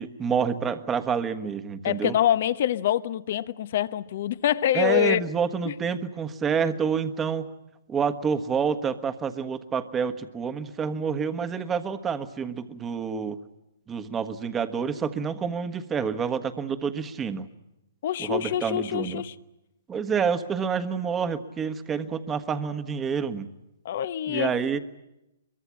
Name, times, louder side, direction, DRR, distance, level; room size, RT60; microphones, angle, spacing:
voice 1, 0.0-2.2 4.7-7.5 7.9-13.4 13.9-17.5 18.2-19.2 19.9-23.5 24.3-24.8, right 6 dB, 15° right, 1.4 m, -28 dB
voice 2, 1.8-5.2 5.6-5.7 18.0-19.3 23.8-24.6, left 11 dB, 55° left, 1.0 m, -25 dB
23.0 x 23.0 x 8.8 m
hypercardioid pair, 135°, 0 cm